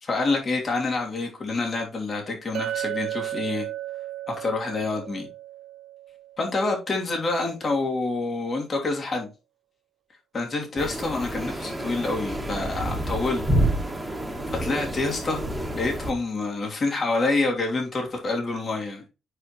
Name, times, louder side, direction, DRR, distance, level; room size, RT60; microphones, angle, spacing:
voice 1, 0.0-3.7 4.3-5.3 6.4-9.3 10.3-13.5 14.1-14.2 14.5-19.1, left 3 dB, 40° left, 2.8 m, -27 dB
Chink clink, 2.5-6.8, right 13 dB, 80° right, 0.4 m, -34 dB
sound 1, 10.8-16.1, right 1 dB, 5° right, 1.9 m, -28 dB
9.6 x 4.8 x 3.1 m
cardioid pair, 90°, 0 cm